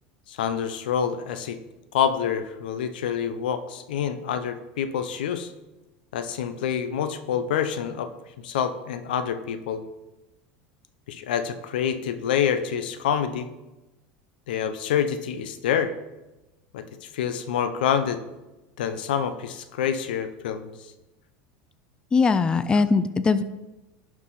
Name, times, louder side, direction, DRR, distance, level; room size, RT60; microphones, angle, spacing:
voice 1, 0.3-1.6 1.9-5.5 6.1-8.1 8.4-9.8 11.1-13.5 14.5-15.9 16.7-18.2 18.8-20.7, left 8 dB, 90° left, 10 dB, 0.7 m, -27 dB
voice 2, 22.1-23.4, left 4 dB, 20° left, 12 dB, 0.4 m, -20 dB
11.5 x 4.7 x 4.1 m, 1.0 s
supercardioid pair, 115°, 5 cm